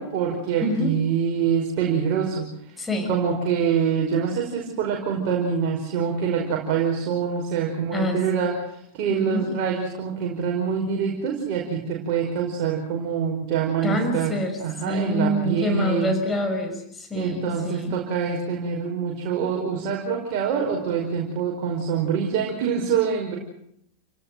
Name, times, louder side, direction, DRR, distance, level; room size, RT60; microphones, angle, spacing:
voice 1, 0.0-2.7 3.1-14.3 14.6-16.1 17.1-23.4, right 7 dB, 45° right, -1 dB, 5.4 m, -25 dB
voice 2, 0.6-1.0 2.8-3.1 7.9-8.2 9.1-9.4 13.8-14.6 14.9-18.0, left 1 dB, 15° left, 5 dB, 5.7 m, -26 dB
30.0 x 18.0 x 7.8 m, 0.73 s
figure-of-eight pair, 90°, 0 cm